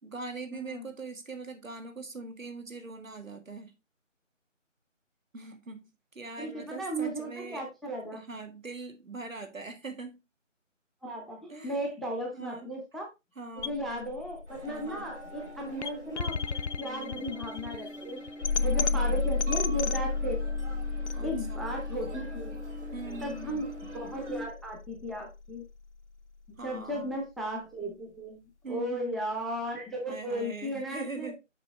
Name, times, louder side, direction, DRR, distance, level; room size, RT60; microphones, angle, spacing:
voice 1, 0.0-3.7 5.3-7.7 8.1-10.2 11.5-11.9 12.3-12.7 13.4-13.8 14.6-15.1 16.8-17.3 18.6-19.3 21.1-21.6 22.9-23.7 26.6-27.1 28.6-29.2 30.1-31.4, right 3 dB, 90° right, 1.8 m, -42 dB
voice 2, 0.5-0.8 6.4-8.2 11.0-13.1 13.6-16.4 16.8-18.2 18.6-20.4 21.2-22.6 23.2-23.7 23.9-25.6 26.6-31.3, equal, ahead, 0.5 m, -35 dB
sound 1, 13.6-25.6, left 4 dB, 60° left, 0.5 m, -33 dB
sound 2, 14.5-24.5, equal, 65° right, 3.4 m, -44 dB
6.7 x 5.1 x 3.3 m
figure-of-eight pair, 170°, 38 cm